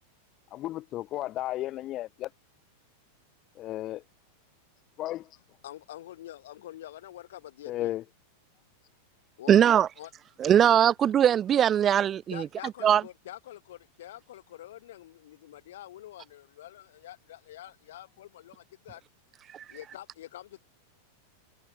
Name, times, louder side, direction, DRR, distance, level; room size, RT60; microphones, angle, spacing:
voice 1, 0.5-2.3 3.6-4.0 5.0-5.3 7.7-8.0, left 15 dB, 35° left, 2.1 m, -33 dB
voice 2, 5.6-8.0 9.4-10.1 10.4-10.7 12.3-19.0 19.7-20.6, left 13 dB, 60° left, 5.1 m, -46 dB
voice 3, 9.5-9.9 10.4-12.5 12.8-13.0 19.5-19.6, right 9 dB, 25° right, 1.4 m, -21 dB
figure-of-eight pair, 90°, 0 cm